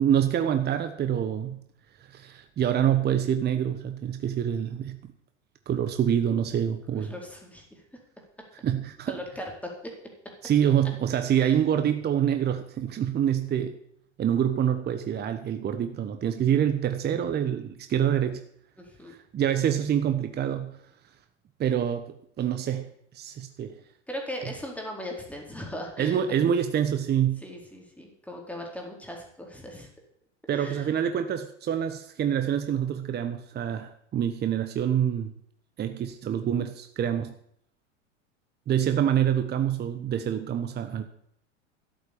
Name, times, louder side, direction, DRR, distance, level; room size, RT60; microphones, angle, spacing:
voice 1, 0.0-1.6 2.1-5.0 5.7-7.1 8.6-9.2 10.4-13.7 14.2-18.4 19.3-20.7 21.6-22.9 23.1-23.7 26.0-27.4 30.5-35.3 35.8-37.3 38.7-41.0, right 9 dB, 25° right, 8 dB, 1.2 m, -26 dB
voice 2, 6.9-7.8 9.1-9.9 11.4-11.5 18.8-19.1 24.1-26.4 27.4-29.9 30.5-30.9, left 1 dB, 5° left, 1 dB, 4.4 m, -38 dB
13.0 x 8.0 x 8.7 m, 0.68 s
hypercardioid pair, 100°, 37 cm